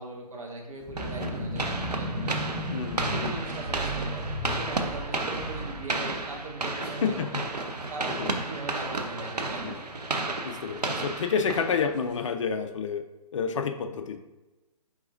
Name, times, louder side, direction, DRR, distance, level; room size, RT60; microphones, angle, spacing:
voice 1, 0.0-2.5 3.1-7.4 7.9-9.6, right 2 dB, 60° right, 0 dB, 1.1 m, -40 dB
sound 1, 0.8-6.8, equal, 15° right, 0.7 m, -35 dB
sound 2, 1.0-12.2, right 2 dB, 90° right, 0.5 m, -33 dB
voice 2, 2.7-3.3 6.8-7.4 7.8-8.3 9.6-9.8 10.4-13.0 13.3-14.2, left 6 dB, 50° left, 7 dB, 0.5 m, -30 dB
4.7 x 3.5 x 2.5 m, 1.1 s
figure-of-eight pair, 135°, 20 cm